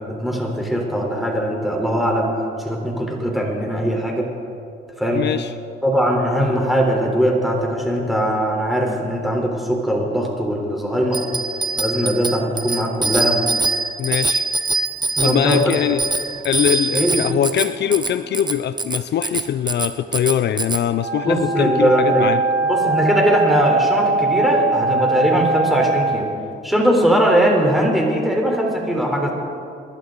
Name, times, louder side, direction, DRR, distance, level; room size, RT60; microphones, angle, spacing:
voice 1, 0.1-2.3 2.6-4.3 5.0-5.2 5.8-11.2 11.8-13.4 15.2-15.6 16.9-17.2 21.2-22.3 22.7-26.3 26.6-29.3, equal, ahead, -1 dB, 3.8 m, -20 dB
voice 2, 5.1-5.5 14.0-14.5 15.2-16.0 16.4-22.4, left 10 dB, 60° left, 12 dB, 0.5 m, -22 dB
Bicycle bell, 11.1-20.8, right 3 dB, 20° right, 0.8 m, -24 dB
Wind instrument woodwind instrument, 20.9-26.2, right 4 dB, 70° right, 1.7 m, -21 dB
26.5 x 12.0 x 4.0 m, 2.5 s
cardioid pair, 90°, 20 cm